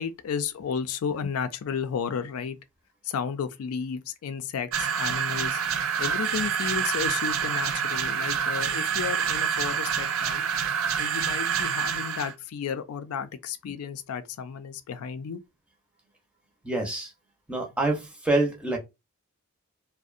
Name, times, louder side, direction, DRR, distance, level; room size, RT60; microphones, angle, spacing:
voice 1, 0.0-2.6 3.1-10.4 11.0-15.4, left 6 dB, 80° left, 0.3 m, -33 dB
sound 1, 4.7-12.3, right 7 dB, 75° right, 0.4 m, -27 dB
voice 2, 16.6-17.1 17.5-18.8, right 2 dB, 5° right, 0.6 m, -26 dB
2.5 x 2.0 x 2.4 m
head